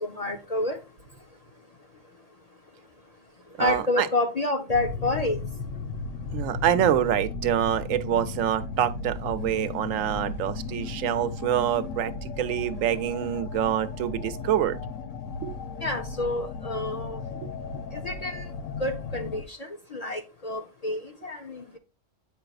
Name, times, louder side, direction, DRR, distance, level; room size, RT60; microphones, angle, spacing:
voice 1, 0.0-0.8 3.6-5.4 15.8-17.2 17.9-18.5 18.8-19.6 19.9-21.8, left 1 dB, 45° left, 0.6 m, -28 dB
voice 2, 3.6-4.1 6.3-14.8 15.4-15.5 17.4-17.5, right 11 dB, 90° right, 1.0 m, -26 dB
sound 1, 4.7-19.4, left 4 dB, 80° left, 1.1 m, -35 dB
7.7 x 5.4 x 2.3 m
omnidirectional pair, 1.3 m